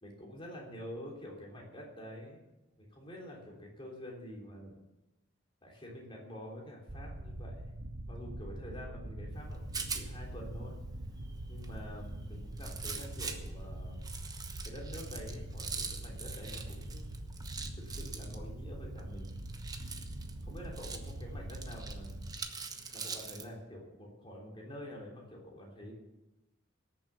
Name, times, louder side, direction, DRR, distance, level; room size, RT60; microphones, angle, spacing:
voice 1, 0.0-2.4 2.8-4.8 5.6-7.6 8.1-10.7 11.5-14.0 14.6-17.1 17.7-19.3 20.5-22.1 22.9-25.9, equal, 25° left, -1 dB, 3.4 m, -47 dB
sound 1, 6.9-22.4, right 1 dB, 80° right, 1.2 m, -43 dB
Rattle, 9.3-23.5, right 5 dB, 20° right, 1.1 m, -45 dB
18.5 x 7.2 x 7.0 m, 1.0 s
head